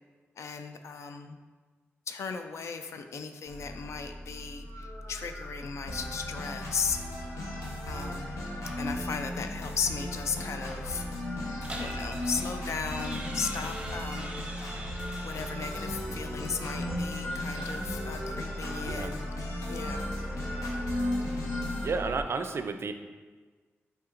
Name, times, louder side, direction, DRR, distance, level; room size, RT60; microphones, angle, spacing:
voice 1, 0.4-1.4 2.1-7.0 7.3-7.4 7.8-8.3 8.8-11.1 11.7-14.9 15.2-19.3 19.7-20.2, left 5 dB, 75° left, 7 dB, 0.3 m, -36 dB
sound 1, 3.5-22.2, left 1 dB, 50° left, 0.8 m, -37 dB
sound 2, 5.9-21.9, left 1 dB, 90° left, 0.8 m, -39 dB
sound 3, 11.6-15.7 17.0-18.2, right 1 dB, 20° right, 0.7 m, -44 dB
voice 2, 15.9-16.2 18.8-19.1 21.8-22.9, right 4 dB, 55° right, 8 dB, 0.4 m, -33 dB
5.7 x 3.4 x 2.5 m, 1.4 s
cardioid pair, 55°, 5 cm